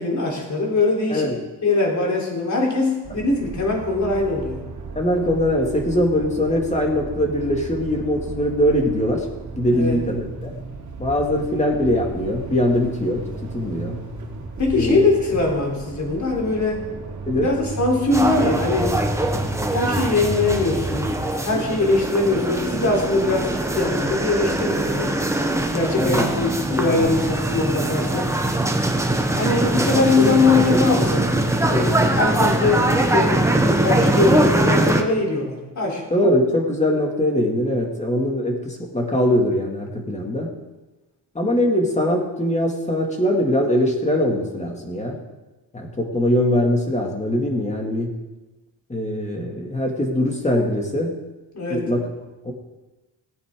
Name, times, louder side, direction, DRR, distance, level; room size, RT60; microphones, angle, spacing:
voice 1, 0.0-1.3 1.6-4.7 9.7-10.0 14.6-16.9 17.4-19.0 19.7-21.1 21.4-25.1 25.7-28.3 29.4-36.0 51.5-51.8, left 3 dB, 45° left, -1 dB, 3.7 m, -22 dB
sound 1, 3.0-18.2, right 4 dB, 45° right, 2.6 m, -35 dB
voice 2, 5.0-9.3 9.5-10.5 11.0-14.0 14.7-15.1 17.3-17.5 26.0-26.3 29.7-31.1 31.7-31.9 36.1-40.5 41.3-45.1 45.7-48.1 48.9-51.1 51.7-52.0 52.4-52.5, left 1 dB, 15° left, 1 dB, 2.3 m, -22 dB
sound 2, 18.1-35.0, right 1 dB, 5° right, 1.1 m, -22 dB
17.5 x 8.8 x 3.8 m, 1.1 s
cardioid pair, 110°, 41 cm